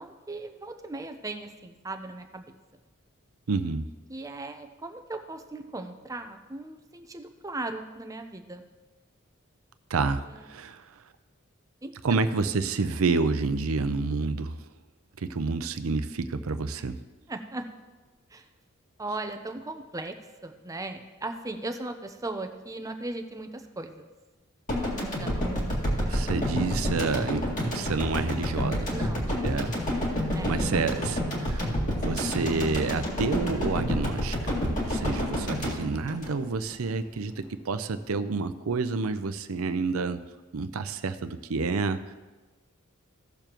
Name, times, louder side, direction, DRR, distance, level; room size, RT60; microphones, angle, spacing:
voice 1, 0.0-2.5 4.1-8.6 10.3-10.5 11.8-12.3 16.7-16.8 17.3-17.7 18.3-18.5 19.0-20.1 20.4-24.1 24.8-26.5 28.9-29.3 30.3-30.7, right 2 dB, 15° right, 6 dB, 0.6 m, -38 dB
voice 2, 3.5-3.8 9.9-11.0 12.0-14.7 15.2-17.0 26.1-28.9 29.4-29.7 30.4-31.8 32.0-40.2 40.5-42.1, right 4 dB, 90° right, 10 dB, 0.5 m, -29 dB
sound 1, 24.7-36.9, equal, 40° left, 2.2 m, -29 dB
16.5 x 6.9 x 3.0 m, 1.2 s
head